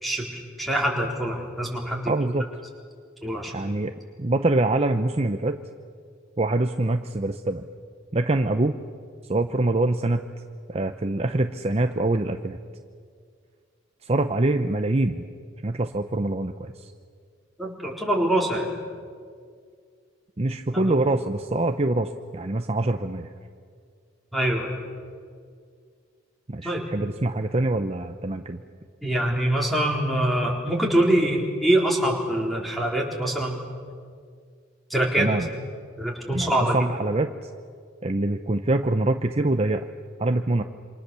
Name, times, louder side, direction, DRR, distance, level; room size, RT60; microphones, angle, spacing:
voice 1, 0.0-2.0 3.2-3.5 17.6-18.7 20.7-20.8 24.3-24.7 26.6-26.8 29.0-33.6 34.9-35.4 36.0-36.8, right 1 dB, ahead, -1 dB, 4.0 m, -24 dB
voice 2, 2.1-2.5 3.5-5.6 6.4-7.7 8.1-8.7 9.3-10.2 10.7-12.6 14.0-15.2 15.6-16.9 20.4-23.3 26.5-28.6 35.2-35.5 36.3-37.5 38.0-39.9 40.2-40.6, right 2 dB, 30° right, 7 dB, 0.7 m, -24 dB
27.5 x 26.0 x 7.0 m, 2.1 s
head